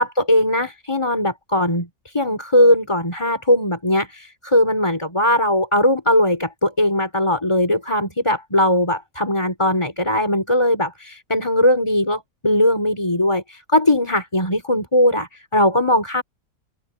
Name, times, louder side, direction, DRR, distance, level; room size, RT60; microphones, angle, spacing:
voice 1, 0.0-16.2, left 1 dB, 20° left, 4.7 m, -19 dB
open air
omnidirectional pair, 1.5 m